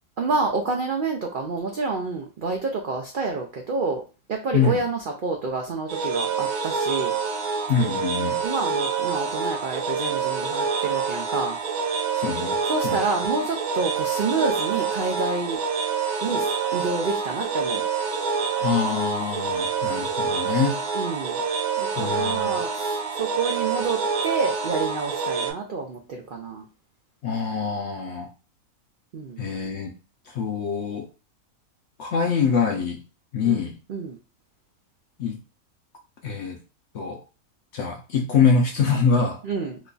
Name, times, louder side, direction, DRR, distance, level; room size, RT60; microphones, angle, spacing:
voice 1, 0.2-4.0 4.3-7.1 8.4-11.6 12.7-15.6 16.2-17.8 20.9-21.4 21.8-26.6 29.1-29.4 33.4-33.6 33.9-34.2 39.4-39.8, right 4 dB, 75° right, 0.4 m, -28 dB
sound 1, 5.9-25.5, right 5 dB, 60° right, 0.9 m, -27 dB
voice 2, 7.7-8.4 12.1-12.6 12.8-13.0 18.6-20.8 22.0-22.5 27.2-28.3 29.4-29.9 30.3-31.1 32.0-33.0 33.3-33.8 35.2-35.4 36.2-36.6 36.9-37.2 37.7-39.4, left 5 dB, 70° left, 0.7 m, -24 dB
3.1 x 2.3 x 3.8 m
omnidirectional pair, 1.6 m